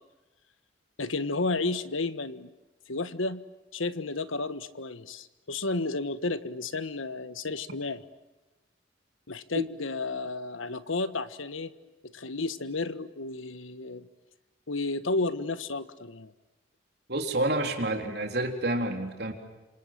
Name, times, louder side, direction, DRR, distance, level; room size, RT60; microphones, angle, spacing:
voice 1, 1.0-2.5 2.9-3.4 3.7-8.0 9.3-11.7 12.0-14.1 14.7-16.3, left 3 dB, 90° left, 13 dB, 1.4 m, -32 dB
voice 2, 17.1-19.3, right 1 dB, 55° right, 4 dB, 3.7 m, -28 dB
27.5 x 27.0 x 7.5 m, 1.1 s
head